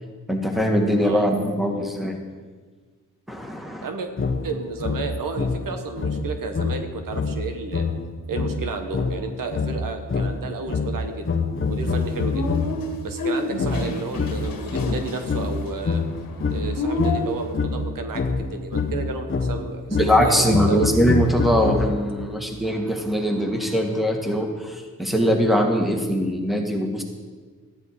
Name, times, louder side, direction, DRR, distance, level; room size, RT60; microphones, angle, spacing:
voice 1, 0.3-2.2 3.3-3.9 19.9-27.0, equal, ahead, 2 dB, 2.1 m, -22 dB
sound 1, 4.2-12.9 13.6-22.2, left 4 dB, 35° left, 1.1 m, -26 dB
voice 2, 4.4-7.8 8.3-11.3 11.6-12.5 13.0-16.0 16.5-20.9, right 4 dB, 75° right, 6 dB, 1.3 m, -32 dB
sound 2, 11.8-17.5, left 2 dB, 85° left, 1.7 m, -30 dB
14.0 x 10.5 x 4.8 m, 1.4 s
cardioid pair, 70°, 33 cm